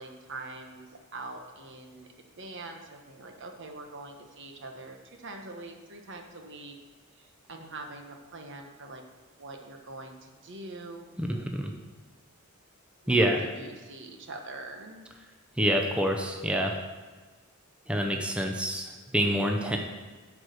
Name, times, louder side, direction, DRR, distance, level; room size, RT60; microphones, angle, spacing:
voice 1, 0.0-2.1 2.3-6.7 7.2-9.0 9.4-11.1 13.0-15.0, right 2 dB, 60° right, 4 dB, 1.1 m, -43 dB
voice 2, 13.1-13.4 15.6-16.8 17.9-19.8, right 1 dB, 5° right, 2 dB, 0.6 m, -26 dB
10.5 x 4.8 x 6.7 m, 1.4 s
head